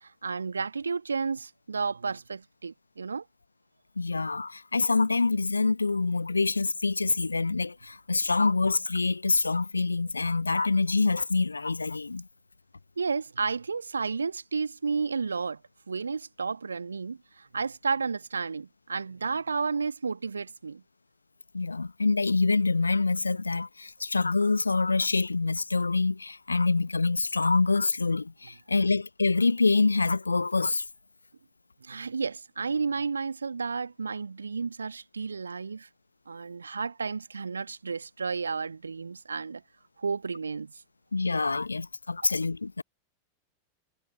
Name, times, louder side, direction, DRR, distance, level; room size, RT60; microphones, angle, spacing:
voice 1, 0.0-3.2 13.0-15.6 15.9-20.8 31.8-35.9 36.3-39.6 40.0-40.7, right 5 dB, 75° right, 1.7 m, -32 dB
voice 2, 4.0-12.3 21.5-30.8 41.1-42.8, left 3 dB, 80° left, 0.9 m, -26 dB
figure-of-eight pair, 90°, 0 cm